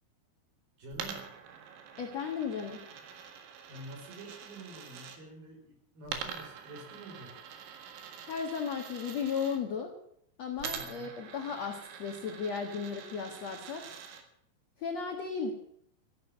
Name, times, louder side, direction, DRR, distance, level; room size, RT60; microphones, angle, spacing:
voice 1, 0.8-1.3 3.7-7.4 10.7-11.1, right 1 dB, 50° right, 2 dB, 5.8 m, -48 dB
Coin (dropping), 0.9-5.2 6.1-9.6 10.6-14.2, right 7 dB, 75° right, 4.1 m, -45 dB
voice 2, 2.0-2.8 8.3-9.9 10.4-13.8 14.8-15.5, left 6 dB, 60° left, 3 dB, 1.8 m, -35 dB
14.5 x 11.0 x 8.7 m, 0.73 s
omnidirectional pair, 5.4 m